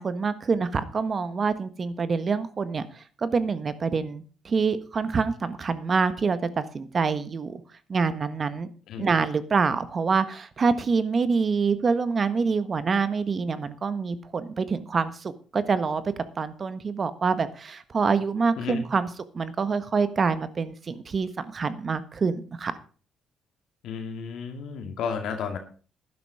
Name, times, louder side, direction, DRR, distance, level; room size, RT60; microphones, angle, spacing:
voice 1, 0.0-7.6 7.9-8.7 9.0-19.1 19.3-22.7, right 5 dB, 40° right, 13 dB, 1.5 m, -26 dB
voice 2, 23.8-25.6, left 6 dB, 80° left, 5 dB, 2.0 m, -32 dB
12.0 x 11.0 x 4.9 m, 0.38 s
cardioid pair, 90°, 0 cm